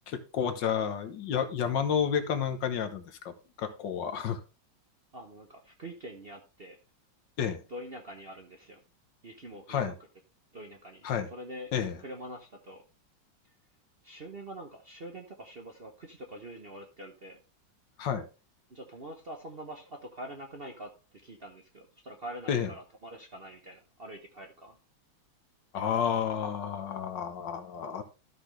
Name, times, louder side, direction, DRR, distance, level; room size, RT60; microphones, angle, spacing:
voice 1, 0.1-4.4 7.4-7.6 9.7-10.0 11.0-11.3 11.7-12.0 18.0-18.3 22.5-22.7 25.7-28.0, left 8 dB, 65° left, 9 dB, 1.7 m, -30 dB
voice 2, 5.1-6.8 7.4-8.8 9.2-9.9 10.5-11.7 12.0-12.8 14.0-17.4 18.7-24.8, right 1 dB, 40° right, 4 dB, 0.9 m, -45 dB
13.0 x 6.0 x 3.3 m, 0.31 s
omnidirectional pair, 2.2 m